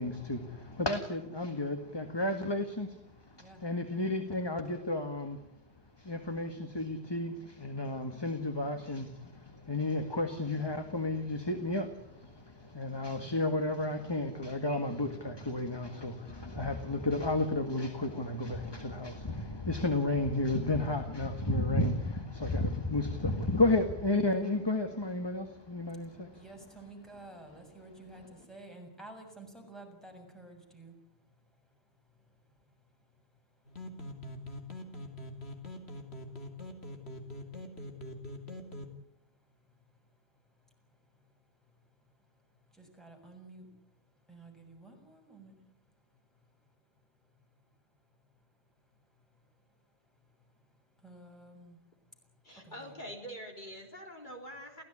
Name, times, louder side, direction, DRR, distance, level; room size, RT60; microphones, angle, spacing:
voice 1, 0.0-5.4 6.0-26.4, left 2 dB, 20° left, 7 dB, 1.8 m, -32 dB
voice 2, 3.3-3.7 5.6-6.1 9.5-9.7 12.3-13.4 25.8-47.8 48.1-48.5 48.8-53.1, right 2 dB, ahead, 2 dB, 7.1 m, -56 dB
sound 1, 33.7-38.9, left 1 dB, 70° left, 3.2 m, -44 dB
voice 3, 52.4-54.8, equal, 45° left, 2 dB, 3.7 m, -45 dB
29.0 x 16.5 x 10.0 m, 0.82 s
omnidirectional pair, 1.1 m